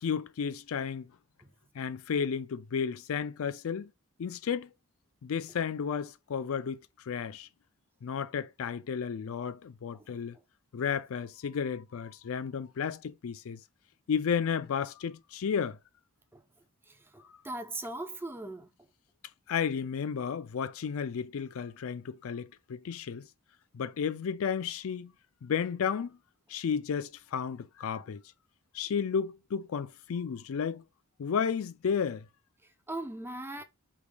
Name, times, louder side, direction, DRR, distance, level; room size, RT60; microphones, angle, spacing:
voice 1, 0.0-1.1 1.8-3.9 4.2-4.7 5.2-6.8 7.1-7.5 8.0-10.4 10.7-13.6 14.1-15.8 19.5-23.3 23.7-25.1 25.4-26.2 26.5-28.2 28.7-30.8 31.2-32.3, left 7 dB, 70° left, 0.4 m, -32 dB
voice 2, 16.9-18.7 32.9-33.6, right 2 dB, 10° right, 0.6 m, -39 dB
5.0 x 3.5 x 2.2 m
head